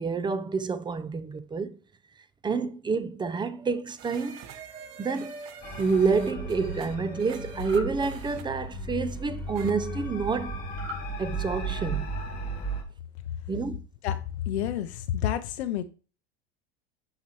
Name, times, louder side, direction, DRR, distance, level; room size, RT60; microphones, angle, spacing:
voice 1, 0.0-1.8 2.4-10.6 11.2-12.1 13.5-13.8, right 4 dB, 15° right, 0.5 m, -29 dB
sound 1, 4.0-8.4 9.6-9.7, right 9 dB, 50° right, 0.9 m, -46 dB
sound 2, 5.6-12.8, right 2 dB, 30° left, 2.0 m, -35 dB
sound 3, 7.5-7.9 10.7-11.1, equal, 75° right, 2.5 m, -39 dB
voice 2, 14.0-15.8, left 10 dB, 85° left, 0.5 m, -29 dB
5.9 x 5.8 x 2.9 m
hypercardioid pair, 100°, 32 cm